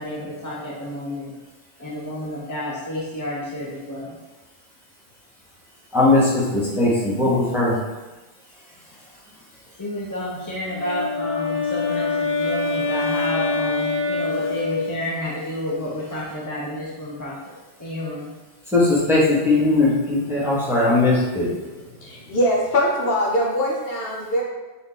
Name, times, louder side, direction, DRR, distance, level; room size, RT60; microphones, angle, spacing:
voice 1, 0.0-1.3 1.8-4.2 9.8-17.4 17.8-18.3, left 1 dB, 20° left, -7 dB, 0.5 m, -30 dB
voice 2, 5.9-7.8 18.7-21.5, left 2 dB, ahead, -7 dB, 1.0 m, -19 dB
Wind instrument woodwind instrument, 10.7-15.2, left 4 dB, 75° left, 1.2 m, -25 dB
voice 3, 22.0-24.4, equal, 60° left, -3 dB, 0.9 m, -22 dB
4.3 x 2.5 x 4.2 m, 1.2 s
omnidirectional pair, 1.2 m